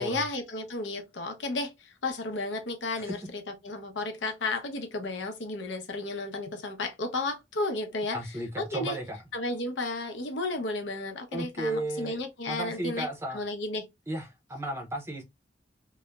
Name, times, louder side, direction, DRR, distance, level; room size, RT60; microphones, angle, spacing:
voice 1, 0.0-3.2 3.6-8.2 8.6-9.0 9.3-13.8, left 2 dB, 90° left, 0.7 m, -33 dB
voice 2, 8.1-9.2 11.3-12.2 12.5-13.4 14.1-15.2, right 1 dB, 15° right, 0.5 m, -34 dB
3.0 x 2.0 x 2.2 m
head